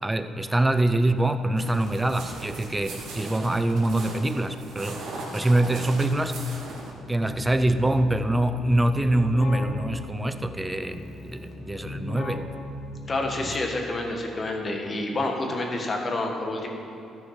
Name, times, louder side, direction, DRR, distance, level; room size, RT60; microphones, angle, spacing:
voice 1, 0.0-5.0 5.3-6.4 7.1-12.4, right 1 dB, 10° right, 10 dB, 0.5 m, -24 dB
sound 1, 1.6-6.9, right 2 dB, 75° right, 1.9 m, -38 dB
Keyboard (musical), 7.0-13.9, left 2 dB, 65° left, 1.6 m, -38 dB
voice 2, 13.1-16.7, left 2 dB, 30° left, 2 dB, 1.5 m, -28 dB
13.0 x 6.4 x 5.9 m, 2.6 s
cardioid pair, 110°, 0 cm